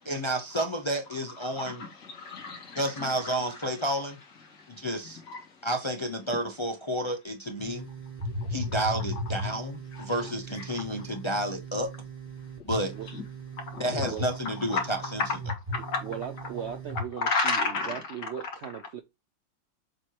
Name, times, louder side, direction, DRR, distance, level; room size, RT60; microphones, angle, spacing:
voice 1, 0.0-1.8 2.8-4.2 4.7-5.2 5.6-7.9 8.5-11.9 12.6-12.9 13.8-15.2, right 1 dB, 45° left, 0.3 m, -31 dB
voice 2, 1.4-3.6 4.5-4.9 5.3-5.7 8.4-8.9 9.9-10.0 10.6-10.7 13.1-13.2 13.7-14.2 14.7-14.8 15.5-16.0 17.2-18.3 18.6-18.7, left 3 dB, 65° left, 2.3 m, -33 dB
sound 1, 7.6-17.0, equal, 20° right, 1.4 m, -37 dB
voice 3, 13.9-14.2 16.0-19.0, right 8 dB, 85° right, 0.6 m, -38 dB
7.3 x 3.0 x 4.6 m
omnidirectional pair, 2.0 m